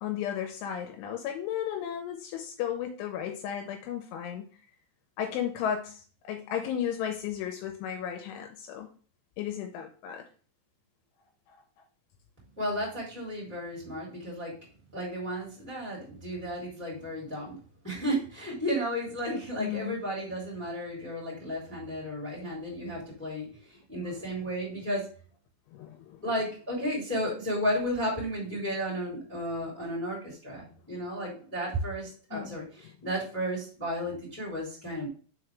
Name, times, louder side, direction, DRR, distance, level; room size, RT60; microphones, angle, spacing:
voice 1, 0.0-4.5 5.2-8.9 9.4-10.3 11.5-11.6 19.6-20.0 24.2-24.3 25.7-26.3 32.3-32.6, left 9 dB, 80° left, 5 dB, 3.0 m, -34 dB
voice 2, 12.5-14.5 14.9-17.6 17.8-25.0 26.2-35.1, equal, 5° left, -4 dB, 1.7 m, -33 dB
6.1 x 4.9 x 3.3 m, 0.41 s
omnidirectional pair, 5.7 m